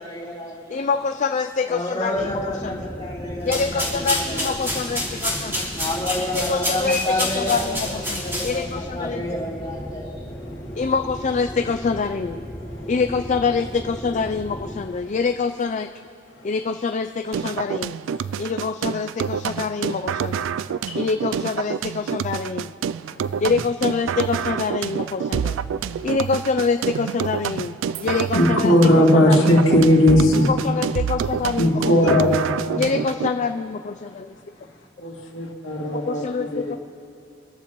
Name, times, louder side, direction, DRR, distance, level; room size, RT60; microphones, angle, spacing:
voice 1, 0.0-0.8 1.7-4.6 5.7-10.1, left 1 dB, 25° left, -7 dB, 3.7 m, -29 dB
voice 2, 0.7-2.8 3.5-5.7 6.5-9.2 10.8-12.4 12.9-15.9 16.4-20.4 20.9-22.7 23.4-25.6 26.0-29.6 30.2-32.2 32.8-34.3 36.1-36.8, left 4 dB, 40° left, 7 dB, 0.4 m, -25 dB
sound 1, 2.1-14.9, equal, 10° left, 1.3 m, -35 dB
sound 2, 3.4-8.8, equal, 15° right, 3.2 m, -28 dB
sound 3, 17.3-33.3, right 7 dB, 85° right, 0.3 m, -27 dB
voice 3, 25.7-26.0 28.3-30.5 31.6-33.0 35.0-36.8, left 1 dB, 80° left, -1 dB, 2.2 m, -19 dB
25.0 x 14.0 x 3.0 m, 2.5 s
head